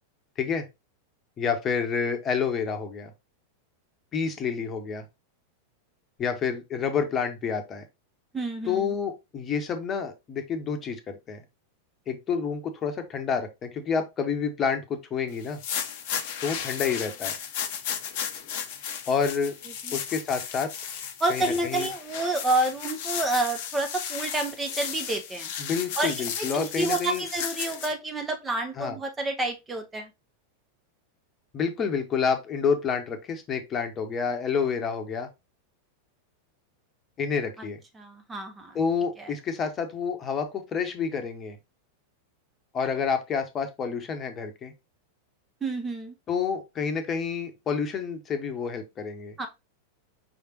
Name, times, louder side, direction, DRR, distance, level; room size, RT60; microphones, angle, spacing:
voice 1, 1.4-3.1 4.1-5.0 6.2-7.8 8.6-11.4 12.1-15.6 16.4-17.3 19.1-19.5 19.9-20.7 21.3-21.9 25.6-27.2 28.8-29.0 31.5-35.3 37.2-37.8 38.7-41.6 42.7-44.7 46.3-49.3, left 6 dB, 25° left, 0.9 m, -29 dB
voice 2, 8.3-8.9 19.8-20.0 21.2-25.5 26.0-30.1 38.0-38.8 39.2-39.3 45.6-46.1 49.4-49.5, right 2 dB, 15° right, 0.7 m, -29 dB
sound 1, 15.4-27.9, left 8 dB, 50° left, 0.7 m, -34 dB
5.4 x 3.4 x 2.9 m
figure-of-eight pair, 90°, 0 cm